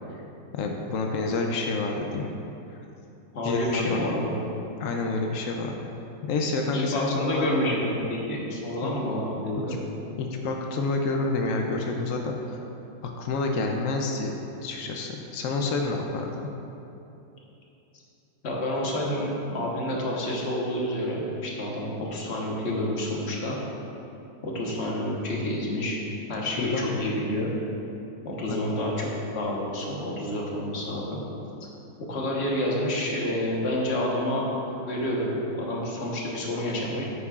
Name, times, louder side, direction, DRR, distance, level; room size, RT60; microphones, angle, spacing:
voice 1, 0.5-2.3 2.7-2.8 3.4-4.2 4.8-5.8 6.2-8.0 8.8-8.9 9.6-9.7 10.2-12.6 13.0-16.5 26.6-26.8 28.5-28.7, left 3 dB, 80° left, 2 dB, 0.7 m, -29 dB
voice 2, 3.3-4.3 6.7-9.8 18.4-23.6 24.4-26.0 26.3-27.5 28.2-29.1 29.3-31.2 32.1-34.5 34.9-37.0, left 1 dB, 40° left, -3 dB, 1.2 m, -29 dB
9.3 x 8.3 x 2.4 m, 2.9 s
omnidirectional pair, 2.0 m